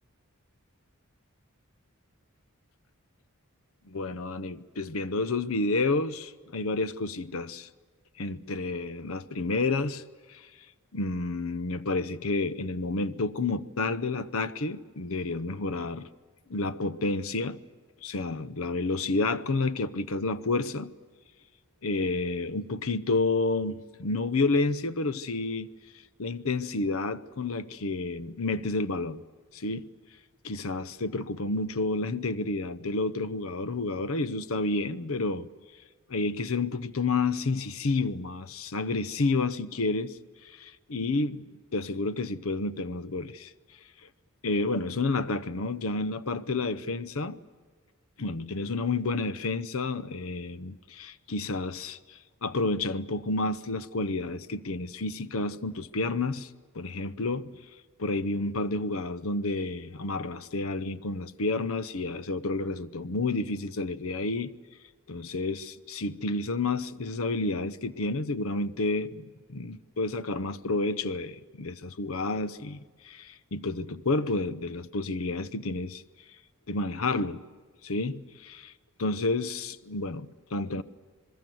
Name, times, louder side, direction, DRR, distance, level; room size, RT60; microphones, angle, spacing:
voice 1, 3.9-7.7 8.2-10.0 10.3-10.5 10.9-16.1 16.5-17.6 18.0-20.9 21.8-25.7 26.2-29.2 29.5-29.9 30.4-35.5 36.1-43.5 44.4-47.4 48.2-56.5 56.7-57.6 58.0-64.5 65.1-76.0 76.7-77.4 77.8-78.7 79.0-80.8, left 3 dB, 70° left, 0.8 m, -30 dB
27.0 x 21.0 x 7.8 m
head